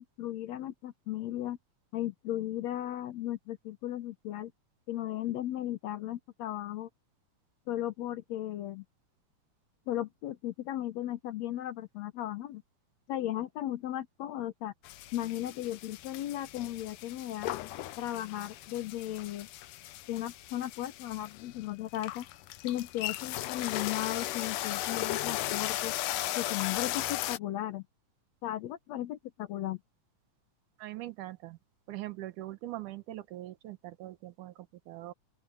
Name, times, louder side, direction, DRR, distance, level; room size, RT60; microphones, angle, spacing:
voice 1, 0.0-1.6 1.9-4.5 4.9-6.9 7.7-8.8 9.9-12.6 13.1-14.7 15.1-17.5 18.0-19.5 20.1-22.3 22.6-25.9 26.4-27.8 28.4-29.8, left 13 dB, 70° left, 1.8 m, -36 dB
sound 1, 14.8-27.4, left 15 dB, 90° left, 2.4 m, -37 dB
voice 2, 30.8-31.6 31.9-35.1, right 15 dB, 80° right, 2.5 m, -42 dB
open air
omnidirectional pair, 3.6 m